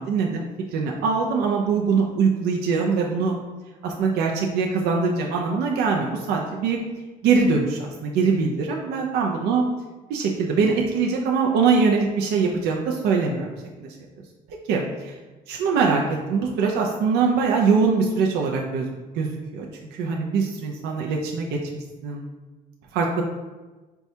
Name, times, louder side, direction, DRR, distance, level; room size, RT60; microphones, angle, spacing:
voice 1, 0.0-3.4 3.8-6.8 7.2-9.7 10.1-13.5 13.8-13.9 14.7-15.1 15.5-16.0 16.3-18.9 19.2-19.7 20.0-21.6 22.0-22.2 22.9-23.2, right 5 dB, 75° right, 0 dB, 0.4 m, -22 dB
4.3 x 2.3 x 2.7 m, 1.2 s
cardioid pair, 110°, 17 cm